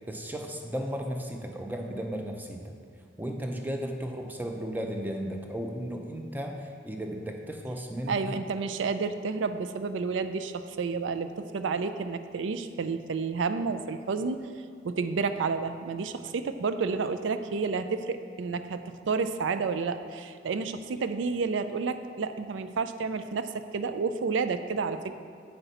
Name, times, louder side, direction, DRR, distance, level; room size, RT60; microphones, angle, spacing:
voice 1, 0.1-2.7 3.2-8.4, equal, 10° right, 2 dB, 0.5 m, -35 dB
voice 2, 8.1-14.4 14.8-25.2, right 4 dB, 85° right, 10 dB, 0.4 m, -30 dB
7.9 x 5.7 x 4.1 m, 2.2 s
head